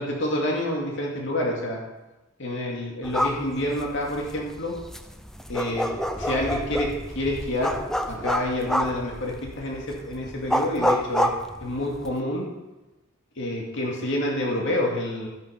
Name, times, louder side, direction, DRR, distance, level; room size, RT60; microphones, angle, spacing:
voice 1, 0.0-1.8 2.4-4.7 5.5-5.9 6.2-7.7 8.1-11.3 11.6-12.5 13.4-15.3, left 1 dB, 70° left, -1 dB, 2.3 m, -28 dB
sound 1, 3.0-12.2, equal, ahead, 0.6 m, -29 dB
14.0 x 8.7 x 5.2 m, 1.1 s
head